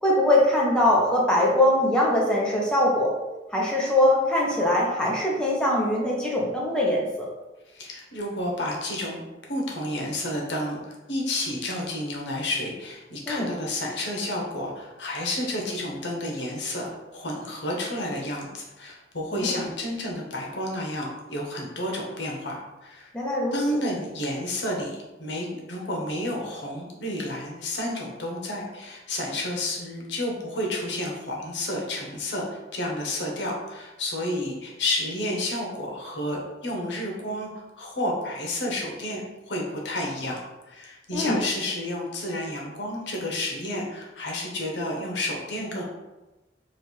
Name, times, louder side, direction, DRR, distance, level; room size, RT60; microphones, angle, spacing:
voice 1, 0.0-3.1 3.5-7.3 13.3-13.5 19.3-19.6 23.1-23.5 41.1-41.4, left 1 dB, 5° left, -4 dB, 0.8 m, -22 dB
voice 2, 7.7-23.1 23.5-39.2 39.5-40.4 40.7-45.8, left 1 dB, 80° left, -1 dB, 0.9 m, -31 dB
3.2 x 2.5 x 4.3 m, 1.1 s
head